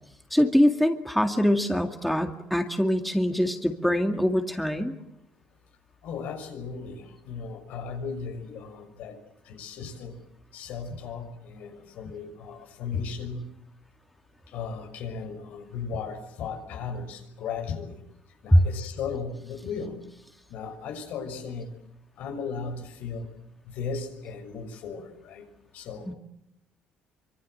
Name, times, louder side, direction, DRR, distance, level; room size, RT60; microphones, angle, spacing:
voice 1, 0.3-4.9 18.5-18.6 26.1-26.2, equal, ahead, 5 dB, 2.2 m, -23 dB
voice 2, 6.0-9.2 9.5-10.2 10.5-13.4 14.5-18.0 18.4-20.0 20.5-21.7 22.2-23.3 23.7-25.4 25.7-26.2, left 5 dB, 75° left, 6 dB, 6.2 m, -36 dB
25.5 x 25.0 x 7.9 m, 0.81 s
cardioid pair, 110°, 3 cm